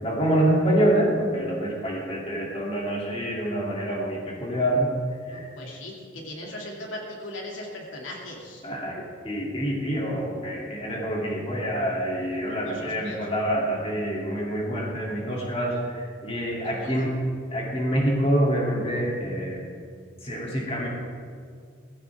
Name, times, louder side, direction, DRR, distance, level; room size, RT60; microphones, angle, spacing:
voice 1, 0.0-4.9 5.3-5.4 8.6-17.1 17.5-19.6 20.2-20.9, right 1 dB, 30° left, -3 dB, 2.8 m, -26 dB
voice 2, 5.3-8.6 12.4-13.3 16.6-17.0, left 1 dB, 80° left, -1 dB, 2.5 m, -39 dB
17.5 x 15.5 x 3.6 m, 2.1 s
head